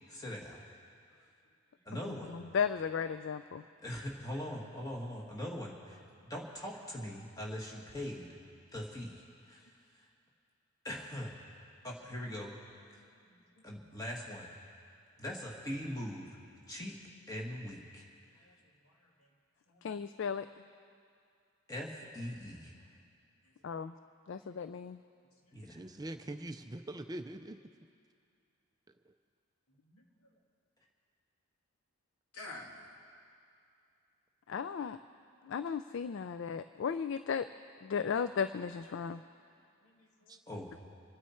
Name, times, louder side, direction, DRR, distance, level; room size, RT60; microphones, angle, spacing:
voice 1, 0.1-0.6 1.8-2.4 3.8-8.3 8.7-9.7 10.8-11.3 11.8-12.5 13.6-14.5 15.2-16.3 16.7-17.0 17.3-18.1 21.7-22.7 25.5-25.8 40.5-40.8, equal, 15° left, -2 dB, 1.6 m, -41 dB
voice 2, 1.9-3.6 19.8-20.5 23.6-23.9 24.3-25.0 34.5-35.0 35.5-37.5 37.8-39.2, left 6 dB, 55° left, 11 dB, 0.3 m, -35 dB
voice 3, 12.9-13.6 18.4-19.3 19.7-20.0 23.6-24.0 24.2-24.5 25.4-25.5 29.7-30.0 32.3-32.9 39.8-40.4, left 2 dB, 85° left, -1 dB, 2.3 m, -54 dB
voice 4, 25.7-27.6 40.3-40.4, right 1 dB, 15° right, 7 dB, 0.3 m, -43 dB
27.0 x 9.5 x 4.4 m, 2.4 s
head